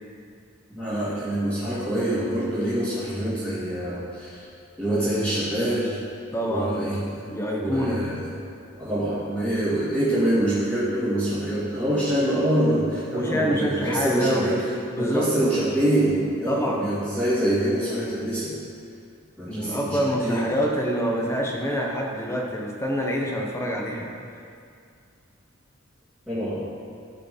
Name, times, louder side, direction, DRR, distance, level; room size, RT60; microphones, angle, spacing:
voice 1, 0.7-4.5 4.8-6.0 6.5-7.3 7.6-8.3 8.8-14.7 15.0-18.6 19.4-20.5 26.3-26.6, right 1 dB, 5° right, -14 dB, 2.4 m, -25 dB
voice 2, 6.3-6.8 7.3-8.0 13.1-14.6 14.9-15.3 16.5-16.9 19.5-24.1, equal, 15° left, -1 dB, 1.1 m, -26 dB
14.5 x 4.9 x 5.2 m, 2.4 s
head